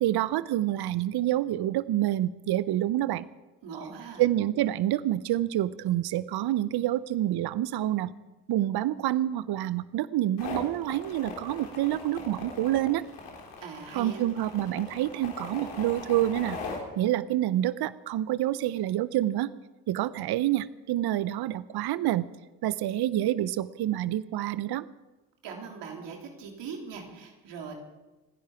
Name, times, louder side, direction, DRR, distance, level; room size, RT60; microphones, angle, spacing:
voice 1, 0.0-3.3 4.2-8.1 8.5-13.0 13.9-16.6 17.0-19.5 19.9-22.3 22.6-24.8, right 13 dB, 60° right, 17 dB, 0.7 m, -27 dB
voice 2, 3.6-4.2 13.6-14.2 25.4-27.7, right 5 dB, 75° right, 1 dB, 3.2 m, -40 dB
sound 1, 10.4-16.8, left 4 dB, 90° left, 3.5 m, -40 dB
27.0 x 10.5 x 4.9 m, 1.1 s
hypercardioid pair, 50°, 43 cm